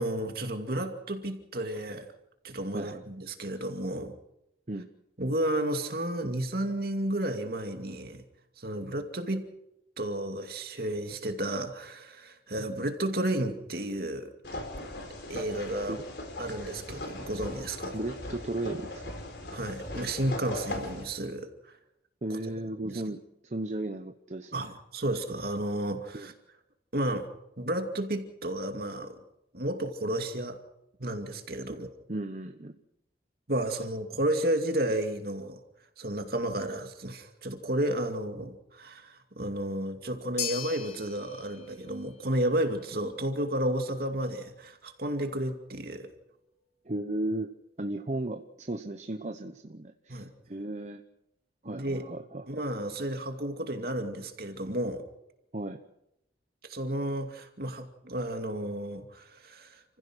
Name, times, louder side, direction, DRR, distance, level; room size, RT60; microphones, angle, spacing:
voice 1, 0.0-2.1 2.4-4.1 5.2-8.2 8.6-9.5 10.0-14.3 15.3-16.0 16.4-17.9 19.5-21.7 22.8-23.0 24.5-26.3 26.9-27.3 27.6-29.2 29.5-30.6 31.0-31.9 33.5-35.6 36.0-46.1 50.1-50.3 51.6-52.1 52.5-55.0 56.6-59.8, right 1 dB, 55° right, 5 dB, 2.5 m, -32 dB
voice 2, 2.7-3.0 4.7-4.9 15.9-16.0 17.9-19.0 22.2-24.7 26.1-26.3 31.7-32.8 46.8-47.5 47.8-50.2 50.5-51.0 51.6-52.6 55.5-55.8, right 1 dB, 40° right, 7 dB, 0.9 m, -35 dB
sound 1, 14.4-21.0, left 1 dB, 70° left, 4.2 m, -39 dB
sound 2, 40.4-48.7, left 7 dB, 35° left, 4.1 m, -44 dB
29.0 x 16.0 x 6.3 m, 0.85 s
head